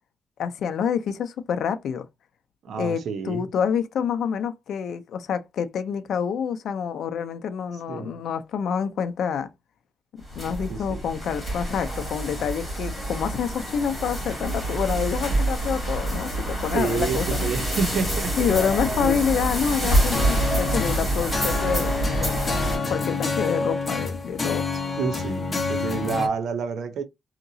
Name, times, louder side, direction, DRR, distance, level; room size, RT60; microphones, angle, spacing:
voice 1, 0.4-2.1 2.8-9.5 10.4-17.5 18.4-24.7, left 7 dB, 60° left, 0.5 m, -27 dB
voice 2, 2.6-3.4 7.9-8.2 10.7-11.0 15.3-15.4 16.1-16.2 16.7-18.5 19.0-19.2 19.8-19.9 25.0-27.0, right 5 dB, 60° right, 0.6 m, -29 dB
sound 1, 10.2-22.8, right 1 dB, 5° left, 2.6 m, -27 dB
sound 2, 20.1-26.3, left 4 dB, 25° left, 0.8 m, -28 dB
3.7 x 2.9 x 2.6 m
cardioid pair, 165°, 0 cm